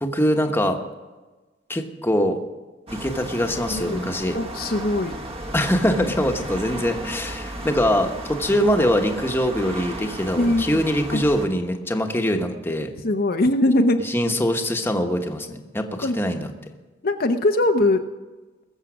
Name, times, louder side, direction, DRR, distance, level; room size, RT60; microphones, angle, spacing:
voice 1, 0.0-0.8 1.7-2.4 2.9-4.4 5.5-12.9 14.0-16.5, equal, 10° left, 4 dB, 1.1 m, -23 dB
sound 1, 2.9-11.5, right 1 dB, 30° right, 1.3 m, -34 dB
voice 2, 3.6-4.1 4.3-5.1 10.4-10.8 11.1-11.2 13.0-14.1 16.0-16.2 17.0-18.0, left 1 dB, 55° left, 5 dB, 0.7 m, -21 dB
20.5 x 7.4 x 6.2 m, 1.2 s
head